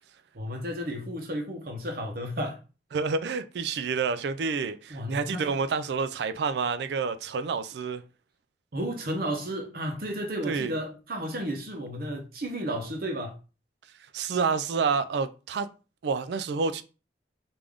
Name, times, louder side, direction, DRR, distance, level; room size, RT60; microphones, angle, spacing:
voice 1, 0.3-2.6 4.9-5.5 8.7-13.4, equal, 55° right, 0.8 m, -33 dB
voice 2, 2.9-8.0 10.4-10.7 14.1-15.7 16.0-16.8, right 5 dB, 70° right, 0.3 m, -28 dB
3.4 x 2.5 x 3.5 m
head